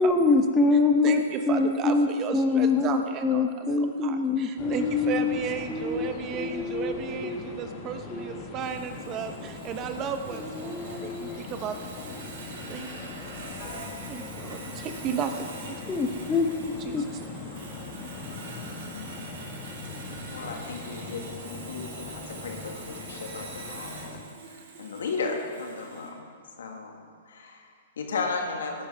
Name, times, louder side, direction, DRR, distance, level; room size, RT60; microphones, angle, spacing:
voice 1, 0.0-2.1 2.3-5.4 5.7-7.4 8.1-8.4 10.5-11.4 15.9-16.5 16.9-17.0, left 3 dB, 15° left, 4 dB, 1.0 m, -25 dB
voice 2, 1.0-11.8 12.4-13.3 14.1-15.8 16.8-17.3, right 7 dB, 30° right, 7 dB, 0.9 m, -34 dB
sound 1, 4.6-24.2, left 4 dB, 35° left, 1.6 m, -40 dB
Sawing, 8.6-26.1, right 4 dB, 60° right, 2.4 m, -45 dB
voice 3, 20.3-24.1 24.4-28.9, left 4 dB, 75° left, 2 dB, 1.8 m, -35 dB
17.0 x 9.9 x 3.5 m, 2.1 s
hypercardioid pair, 120°, 0 cm